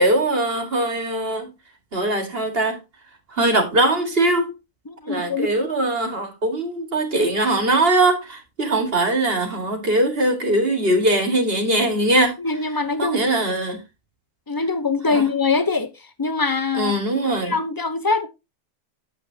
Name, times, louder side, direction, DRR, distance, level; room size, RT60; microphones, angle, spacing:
voice 1, 0.0-1.5 1.9-2.8 3.3-4.5 5.1-12.4 13.0-13.8 15.1-15.3 16.8-17.6, right 1 dB, 40° right, 2.1 m, -21 dB
voice 2, 4.9-5.5 12.4-13.2 14.5-18.3, left 4 dB, 20° left, 0.6 m, -23 dB
9.2 x 7.6 x 2.8 m
omnidirectional pair, 1.5 m